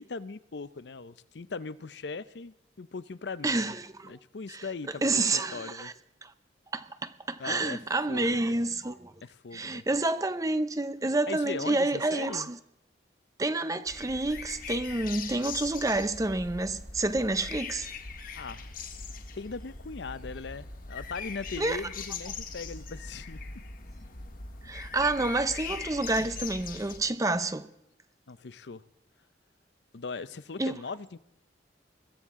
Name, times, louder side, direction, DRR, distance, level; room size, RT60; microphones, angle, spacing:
voice 1, 0.0-3.7 4.0-5.9 7.4-7.8 8.1-8.6 9.2-9.8 11.3-12.5 18.3-18.7 19.3-23.4 26.2-26.3 28.3-28.8 29.9-31.2, left 4 dB, 70° left, 0.6 m, -39 dB
voice 2, 3.4-4.1 4.5-4.6 5.0-5.9 6.2-6.3 6.7-9.1 9.5-12.6 13.4-17.9 21.6-21.8 24.6-27.7 30.6-30.8, right 2 dB, 20° right, 0.5 m, -29 dB
sound 1, 13.9-27.0, left 4 dB, 50° left, 1.5 m, -41 dB
21.5 x 15.5 x 3.7 m
head